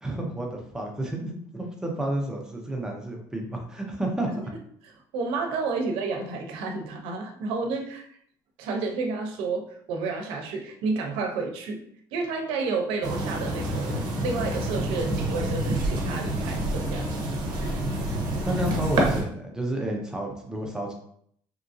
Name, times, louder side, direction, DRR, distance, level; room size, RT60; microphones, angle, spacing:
voice 1, 0.0-4.5 18.4-20.9, right 1 dB, 5° right, 0 dB, 0.5 m, -31 dB
voice 2, 5.1-8.2 8.6-11.8 12.1-17.1, right 4 dB, 90° right, 2 dB, 0.6 m, -30 dB
sound 1, 13.0-19.2, right 1 dB, 50° right, 0.7 m, -27 dB
2.9 x 2.5 x 2.5 m, 0.65 s
cardioid pair, 155°, 9 cm